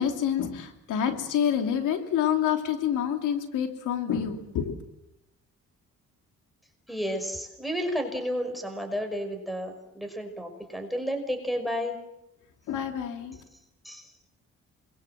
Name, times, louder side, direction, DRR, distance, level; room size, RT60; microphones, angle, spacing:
voice 1, 0.0-4.8 12.7-13.4, left 9 dB, 85° left, 6 dB, 3.2 m, -27 dB
voice 2, 6.9-12.0 13.9-14.1, equal, ahead, 6 dB, 5.4 m, -32 dB
28.5 x 22.5 x 7.7 m, 0.88 s
cardioid pair, 90°, 30 cm